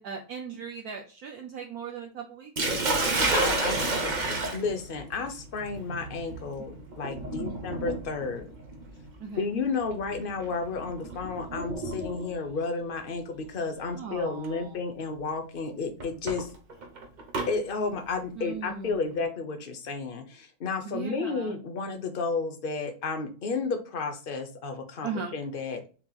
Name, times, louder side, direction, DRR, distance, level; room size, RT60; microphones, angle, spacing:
voice 1, 0.0-3.1 7.4-7.6 9.2-9.4 13.9-14.8 18.4-19.1 20.8-21.6 25.0-25.3, right 6 dB, 65° right, 2 dB, 1.1 m, -38 dB
Sink (filling or washing), 2.6-12.5 13.6-13.9 14.4-14.5 16.0-17.5, right 2 dB, 35° right, 0.7 m, -31 dB
voice 2, 3.2-8.5 9.4-16.5 17.5-25.8, left 4 dB, 50° left, 6 dB, 0.6 m, -32 dB
6.9 x 2.9 x 2.3 m, 0.37 s
omnidirectional pair, 1.9 m